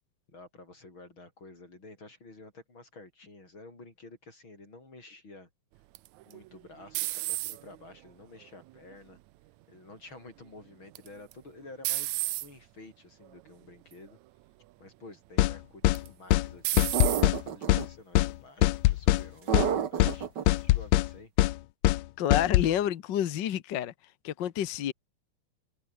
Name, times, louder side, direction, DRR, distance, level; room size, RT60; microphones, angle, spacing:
voice 1, 0.3-5.5 6.2-9.2 9.7-14.2 14.8-16.9 17.2-21.3, left 2 dB, 40° left, 8.3 m, -50 dB
sound 1, 5.9-7.9 8.4-8.9 10.9-11.3 11.8-12.5 13.3-13.5 13.9-14.0 15.9-16.3 16.6-17.3, right 18 dB, 80° right, 2.0 m, -32 dB
sound 2, 15.4-15.5 15.8-16.0 16.3-16.5 16.8-17.4 17.7-17.8 18.1-18.3 18.6-19.2 19.5-19.7 20.0-20.2 20.5-21.1 21.4-21.5 21.8-22.0 22.3-22.7, left 17 dB, 80° left, 1.9 m, -22 dB
sound 3, 16.9-17.8 19.5-20.4, right 8 dB, 50° right, 1.4 m, -29 dB
voice 2, 22.2-23.9 24.2-24.9, left 10 dB, 60° left, 1.1 m, -29 dB
open air
omnidirectional pair, 3.4 m